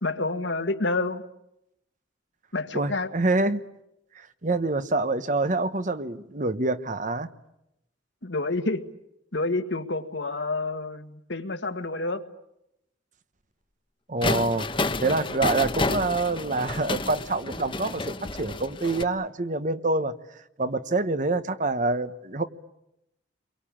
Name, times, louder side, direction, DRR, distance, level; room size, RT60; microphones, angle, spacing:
voice 1, 0.0-1.2 2.5-3.1 8.2-8.8 9.3-12.2, left 2 dB, 65° left, 8 dB, 1.7 m, -28 dB
voice 2, 2.7-3.6 4.1-7.3 14.1-20.1 20.6-22.4, right 2 dB, 40° right, 12 dB, 1.1 m, -26 dB
sound 1, 14.2-19.0, left 3 dB, 25° left, 1.0 m, -30 dB
29.5 x 23.0 x 8.8 m, 0.84 s
head